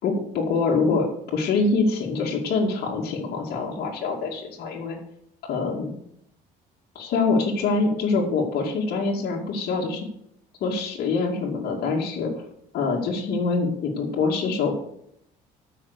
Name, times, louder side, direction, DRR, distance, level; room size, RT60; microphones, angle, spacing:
voice 1, 0.0-5.0 5.4-5.9 6.9-10.1 10.6-12.3 12.7-14.7, left 4 dB, 70° left, -2 dB, 2.4 m, -25 dB
13.0 x 6.0 x 6.6 m, 0.75 s
cardioid pair, 110°, 17 cm